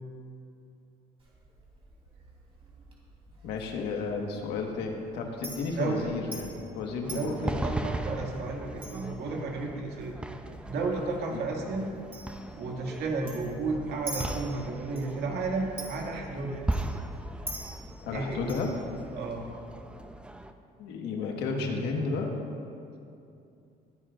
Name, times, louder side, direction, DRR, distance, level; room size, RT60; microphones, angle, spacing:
Chink clink, 1.2-19.4, right 2 dB, 35° right, 3.3 m, -47 dB
voice 1, 3.4-6.5 6.7-7.6 11.3-11.4 18.0-18.7 20.8-22.3, left 4 dB, 90° left, 2 dB, 1.5 m, -32 dB
voice 2, 5.8-6.1 7.1-10.1 10.7-11.9 12.6-16.7 18.1-18.4 19.1-19.4, right 3 dB, 75° right, -1 dB, 2.2 m, -32 dB
sound 1, 7.0-20.5, right 1 dB, 5° right, 0.5 m, -38 dB
22.0 x 10.0 x 2.5 m, 2.6 s
cardioid pair, 110°, 17 cm